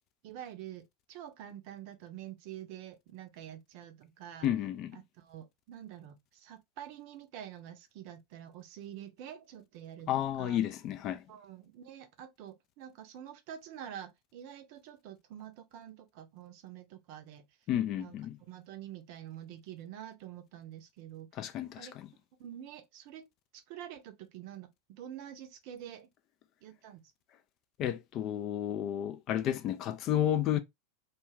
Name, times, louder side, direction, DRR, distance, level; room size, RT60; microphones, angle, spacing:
voice 1, 0.2-0.8 1.1-4.5 4.9-10.6 11.3-17.5 17.9-21.9 22.4-23.3 23.5-24.7 25.0-26.1 26.6-27.0, right 10 dB, 50° right, 0.6 m, -47 dB
voice 2, 4.4-5.0 10.1-11.2 17.7-18.4 21.4-21.9 27.8-30.6, left 11 dB, 40° left, 0.4 m, -31 dB
2.4 x 2.3 x 3.2 m
figure-of-eight pair, 85°, 0 cm